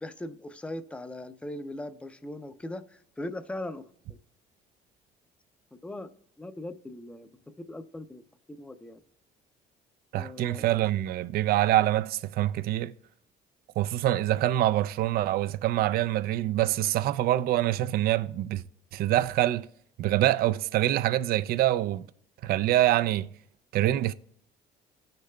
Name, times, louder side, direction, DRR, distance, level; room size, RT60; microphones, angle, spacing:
voice 1, 0.0-3.8 5.8-6.1 6.4-8.2 8.5-9.0 10.1-10.7, left 1 dB, 5° left, 0.5 m, -39 dB
voice 2, 10.1-12.9 13.8-18.6 18.9-19.7 20.0-22.0 22.4-23.3 23.7-24.1, right 14 dB, 65° right, 0.4 m, -25 dB
14.0 x 6.6 x 2.2 m
cardioid pair, 110°, 17 cm